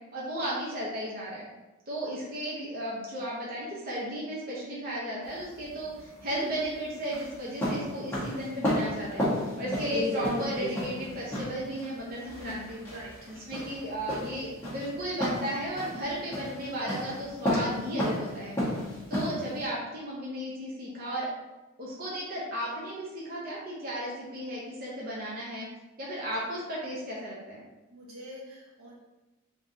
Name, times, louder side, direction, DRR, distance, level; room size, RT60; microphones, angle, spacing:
voice 1, 0.1-1.4 1.9-9.2 9.6-12.8 13.3-18.6 19.1-21.3 21.8-25.7 26.0-27.6, right 1 dB, 40° right, -6 dB, 0.7 m, -34 dB
sound 1, 5.2-19.6, left 1 dB, 10° left, 1.1 m, -33 dB
voice 2, 12.9-13.3 27.9-29.0, right 1 dB, 80° right, -5 dB, 1.2 m, -45 dB
3.6 x 3.4 x 2.7 m, 1.1 s
head